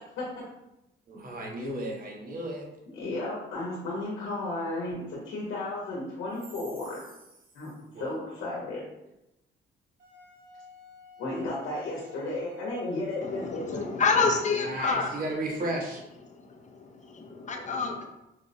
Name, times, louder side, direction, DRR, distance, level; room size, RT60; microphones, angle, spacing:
voice 1, 0.2-0.5 2.9-7.0 7.5-8.8 11.2-13.9, left 2 dB, 85° left, -4 dB, 0.9 m, -34 dB
voice 2, 1.1-2.7 7.9-8.4 14.6-16.0, right 1 dB, 45° right, -1 dB, 0.9 m, -34 dB
Wind instrument woodwind instrument, 10.0-14.5, left 4 dB, 75° right, 1.3 m, -53 dB
voice 3, 13.2-15.8 16.2-18.1, left 4 dB, 40° left, 3 dB, 0.5 m, -29 dB
4.4 x 2.0 x 2.7 m, 0.92 s
cardioid pair, 90°, 20 cm